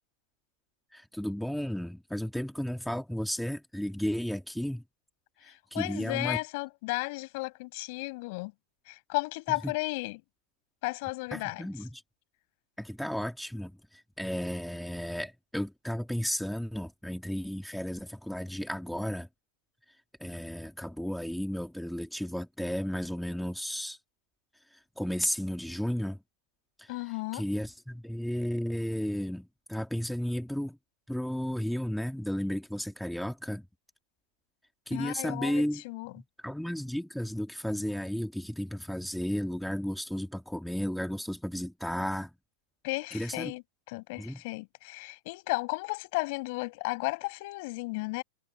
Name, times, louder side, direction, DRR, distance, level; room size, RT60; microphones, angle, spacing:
voice 1, 0.9-4.8 5.7-6.4 9.6-9.7 11.3-12.0 12.8-19.3 20.2-24.0 25.0-26.2 26.8-26.9 27.3-30.8 31.1-33.7 34.9-35.8 36.4-42.3 43.1-43.5 44.2-44.4, equal, ahead, 2.1 m, -33 dB
voice 2, 5.4-8.5 8.9-10.2 10.8-11.7 26.9-27.4 34.9-36.2 42.8-48.2, left 26 dB, 55° left, 5.6 m, -34 dB
supercardioid pair, 150°, 0 cm